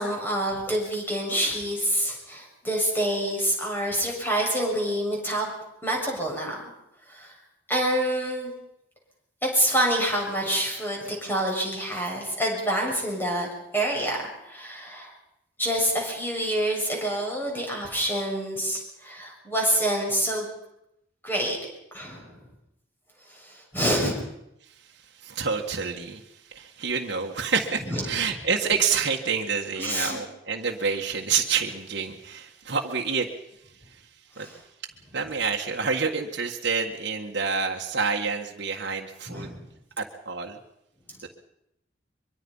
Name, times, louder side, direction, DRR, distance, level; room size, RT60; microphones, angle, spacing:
voice 1, 0.0-5.5 5.8-6.6 7.1-7.3 7.7-8.5 9.4-15.1 15.6-20.5 21.2-21.6 21.9-22.4 23.3-24.3 27.9-28.0 29.8-30.2 34.4-34.6 39.3-39.7, right 1 dB, 10° left, -1 dB, 7.1 m, -27 dB
voice 2, 25.2-26.2 26.5-33.3 33.9-34.0 34.4-34.5 35.1-39.5 40.0-40.6 41.2-41.3, right 5 dB, 60° right, 0 dB, 1.8 m, -28 dB
23.5 x 23.5 x 5.6 m, 0.81 s
head